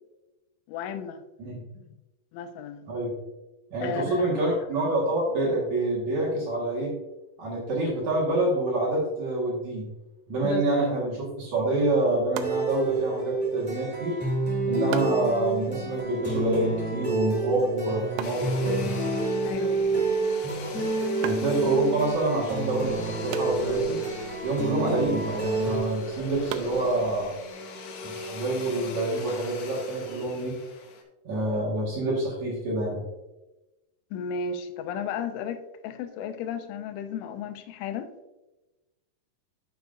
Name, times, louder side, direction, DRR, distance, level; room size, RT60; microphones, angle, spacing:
voice 1, 0.7-1.2 2.3-2.9 3.8-4.4 10.4-10.9 19.5-20.1 34.1-38.1, left 6 dB, 90° left, 9 dB, 3.1 m, -34 dB
voice 2, 3.7-6.9 7.4-9.9 10.3-14.2 14.7-18.9 21.2-24.0 24.4-27.3 28.0-30.5 31.2-33.0, right 2 dB, 55° right, -5 dB, 2.3 m, -27 dB
sound 1, 11.7-27.5, right 7 dB, 80° right, 2.5 m, -43 dB
sound 2, 12.4-25.8, right 3 dB, 10° left, 0.6 m, -29 dB
Domestic sounds home sounds, 18.2-31.0, left 3 dB, 70° left, 2.9 m, -39 dB
9.4 x 7.9 x 2.6 m, 1.0 s
omnidirectional pair, 5.3 m